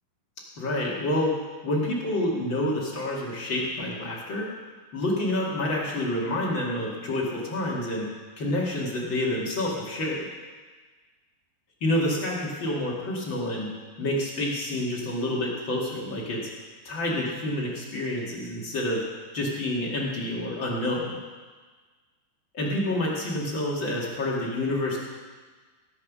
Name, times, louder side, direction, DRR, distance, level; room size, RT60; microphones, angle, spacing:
voice 1, 0.6-1.3 1.6-4.5 4.9-8.1 8.4-10.2 11.8-13.7 14.0-16.4 16.8-19.0 19.3-21.1 22.5-25.0, left 1 dB, 40° left, -4 dB, 1.9 m, -28 dB
18.0 x 7.5 x 6.2 m, 1.4 s
omnidirectional pair, 5.1 m